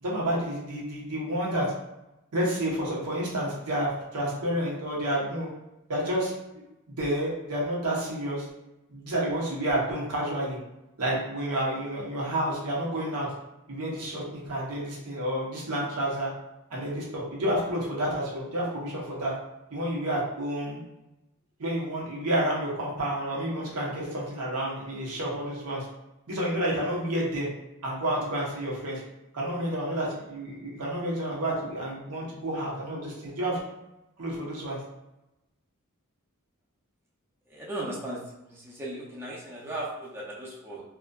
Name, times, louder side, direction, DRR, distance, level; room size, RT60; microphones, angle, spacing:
voice 1, 0.0-1.7 2.3-5.5 5.9-8.5 8.9-10.6 11.0-13.3 13.7-16.3 16.7-19.3 19.7-20.8 21.6-25.8 26.3-27.5 27.8-29.0 29.3-33.6 34.2-34.8, right 1 dB, 85° right, -4 dB, 0.8 m, -30 dB
voice 2, 37.5-38.2 38.5-40.8, right 1 dB, 10° right, -6 dB, 0.4 m, -36 dB
2.5 x 2.3 x 2.2 m, 0.94 s
head